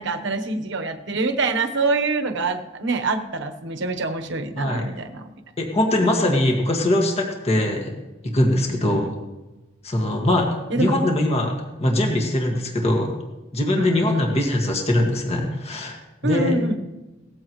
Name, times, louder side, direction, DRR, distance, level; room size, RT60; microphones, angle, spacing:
voice 1, 0.0-5.3 8.7-9.1 10.7-11.0 13.7-14.4 16.2-16.8, right 3 dB, 60° right, 7 dB, 1.1 m, -25 dB
voice 2, 5.6-7.9 8.2-9.1 9.8-10.5 10.8-13.2 13.5-16.5, left 1 dB, 30° left, 1 dB, 1.9 m, -22 dB
18.0 x 14.5 x 3.1 m, 1.1 s
head